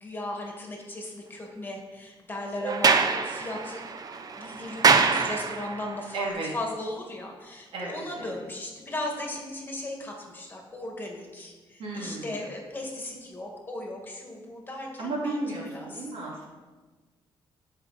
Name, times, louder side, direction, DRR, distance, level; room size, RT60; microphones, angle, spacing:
voice 1, 0.0-3.8 4.4-15.4 15.7-16.1, left 1 dB, 20° left, 0 dB, 1.9 m, -37 dB
Sliding door, 2.6-5.9, right 5 dB, 45° right, 0.7 m, -24 dB
voice 2, 6.1-6.5 7.7-8.4 11.8-12.5 15.0-16.5, right 2 dB, 85° right, -3 dB, 2.6 m, -34 dB
14.0 x 5.6 x 4.2 m, 1.3 s
cardioid pair, 125°, 9 cm